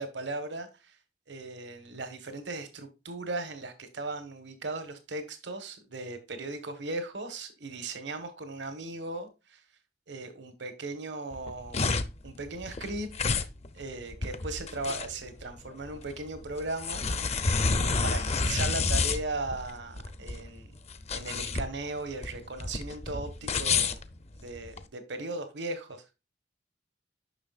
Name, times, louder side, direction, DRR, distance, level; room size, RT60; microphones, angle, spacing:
voice 1, 0.0-1.0 1.3-9.6 10.1-11.9 12.2-13.4 13.7-17.5 17.8-20.7 21.1-24.0 24.4-26.2, right 2 dB, 80° right, 1.3 m, -37 dB
sound 1, 11.3-24.8, left 4 dB, 35° left, 0.6 m, -30 dB
9.7 x 6.0 x 2.4 m
head